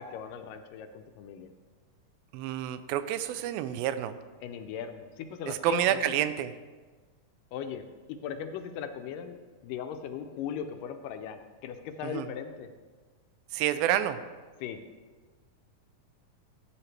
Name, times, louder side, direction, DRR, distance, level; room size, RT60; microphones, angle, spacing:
voice 1, 0.0-1.5 4.4-6.2 7.5-12.7 14.6-14.8, left 8 dB, 80° left, 7 dB, 2.1 m, -38 dB
voice 2, 2.3-4.2 5.5-6.5 12.0-12.3 13.5-14.2, right 11 dB, 90° right, 12 dB, 2.3 m, -29 dB
13.5 x 7.6 x 3.3 m, 1.4 s
omnidirectional pair, 4.0 m